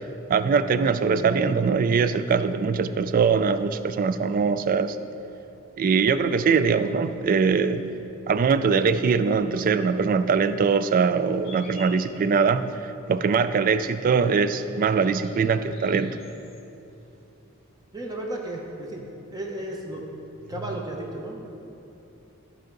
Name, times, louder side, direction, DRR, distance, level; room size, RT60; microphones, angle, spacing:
voice 1, 0.3-5.0 5.8-7.8 8.3-12.7 13.1-16.2, right 5 dB, 40° right, 12 dB, 0.3 m, -22 dB
sound 1, 11.4-12.1 14.9-16.7 16.9-17.5 18.5-18.6, left 1 dB, 30° left, 1.1 m, -47 dB
voice 2, 17.9-19.0 19.3-20.0 20.5-21.4, right 1 dB, 20° right, 0 dB, 1.0 m, -33 dB
13.5 x 4.7 x 3.9 m, 2.9 s
head